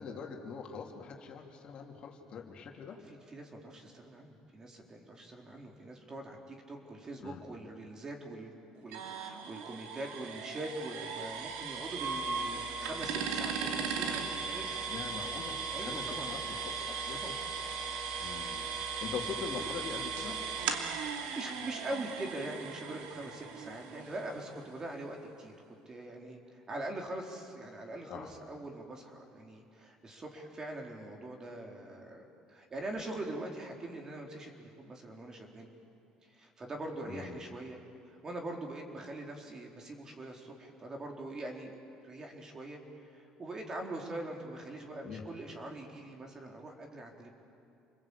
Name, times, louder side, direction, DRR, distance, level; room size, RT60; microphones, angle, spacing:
voice 1, 0.0-3.0 7.2-7.4 14.9-17.2 18.2-18.7 19.0-20.4 28.1-28.3 37.0-37.4 45.0-45.2, left 6 dB, 50° left, 1 dB, 3.3 m, -43 dB
voice 2, 3.1-14.8 15.7-16.3 17.1-17.4 21.4-25.5 25.9-35.7 36.3-37.8 38.1-47.3, right 2 dB, 30° right, 1 dB, 4.3 m, -43 dB
sound 1, 8.9-24.6, right 5 dB, 85° right, 2.6 m, -37 dB
29.5 x 21.5 x 8.8 m, 2.6 s
cardioid pair, 105°, 2 cm